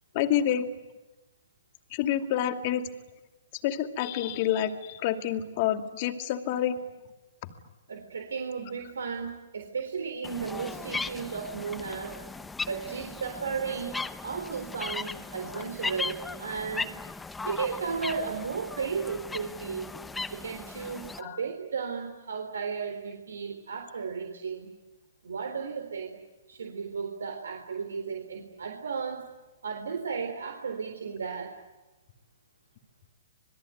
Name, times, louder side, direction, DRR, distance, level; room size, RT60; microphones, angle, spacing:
voice 1, 0.1-0.7 1.9-2.9 3.6-6.8 15.5-15.6 21.2-21.4, left 10 dB, 45° left, 7 dB, 2.5 m, -28 dB
voice 2, 7.9-12.2 12.6-17.0 17.4-19.9 20.3-24.7 25.2-26.2 26.5-29.2 29.6-31.5, right 5 dB, 85° right, 4 dB, 3.8 m, -34 dB
sound 1, 10.2-21.2, left 3 dB, 10° left, 1.0 m, -37 dB
27.0 x 21.0 x 9.5 m, 1.1 s
hypercardioid pair, 135°, 0 cm